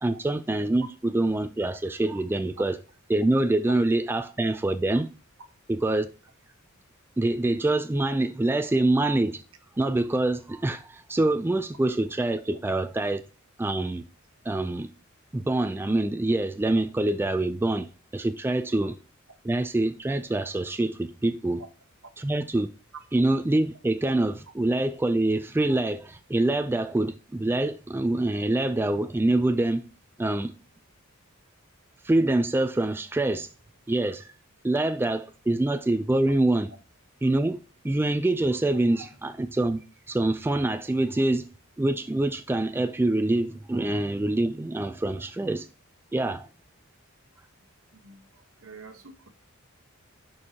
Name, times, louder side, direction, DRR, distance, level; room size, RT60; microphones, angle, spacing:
voice 1, 0.0-2.8 3.1-5.1 5.7-6.1 7.2-9.4 9.8-13.2 13.6-14.0 14.5-14.9 15.3-19.0 19.4-21.6 22.2-22.7 23.1-29.8 30.2-30.5 32.0-33.5 33.9-34.3 34.6-36.7 37.2-37.6 37.8-39.8 40.1-41.4 41.8-45.7 46.1-46.5, right 2 dB, 10° right, 0.3 m, -25 dB
voice 2, 48.6-49.3, right 4 dB, 70° right, 1.1 m, -45 dB
11.0 x 4.5 x 2.8 m
head